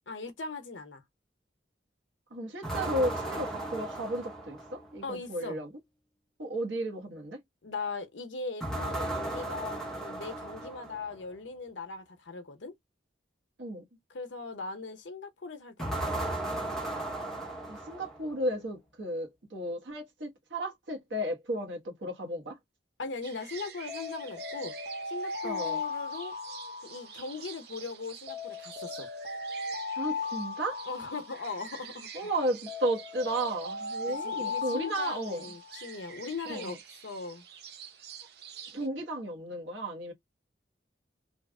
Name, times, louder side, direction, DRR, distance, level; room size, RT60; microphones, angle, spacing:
voice 1, 0.1-1.0 5.0-5.6 7.6-12.7 14.1-16.3 23.0-24.7 25.1-26.4 26.8-29.1 30.9-32.3 34.0-37.4, left 4 dB, 85° left, 0.8 m, -39 dB
voice 2, 2.3-5.7 6.4-7.4 13.6-13.8 17.7-22.6 25.4-25.8 30.0-30.8 32.1-35.4 36.5-36.7 38.7-40.1, right 1 dB, 85° right, 1.3 m, -34 dB
sound 1, 2.6-5.0 8.6-11.1 15.8-18.4, right 2 dB, 5° left, 0.8 m, -35 dB
sound 2, 23.2-38.9, right 8 dB, 60° right, 0.6 m, -48 dB
Alarm, 23.9-27.6 28.3-32.0 32.7-35.9, left 4 dB, 30° right, 0.8 m, -37 dB
3.2 x 2.4 x 2.2 m
head